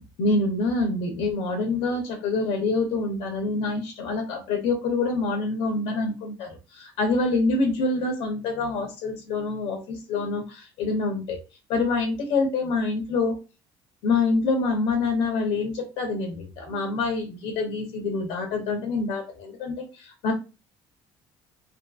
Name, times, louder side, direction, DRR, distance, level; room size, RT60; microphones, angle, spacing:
voice 1, 0.0-11.4 11.7-13.4 14.0-20.3, left 3 dB, 70° left, 3 dB, 0.6 m, -26 dB
2.6 x 2.6 x 2.3 m, 0.29 s
cardioid pair, 180°, 10 cm